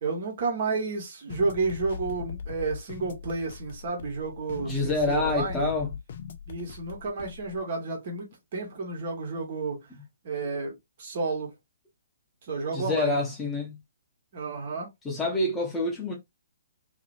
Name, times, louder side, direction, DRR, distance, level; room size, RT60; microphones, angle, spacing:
voice 1, 0.0-5.7 6.5-9.8 10.2-10.7 11.0-11.5 12.5-13.2 14.3-14.9, right 4 dB, 45° right, 1.3 m, -31 dB
sound 1, 1.3-7.6, left 6 dB, 50° left, 0.5 m, -40 dB
voice 2, 4.6-6.0 12.7-13.8 15.0-16.1, left 2 dB, 10° left, 1.0 m, -27 dB
2.9 x 2.7 x 2.6 m
figure-of-eight pair, 125°, 0 cm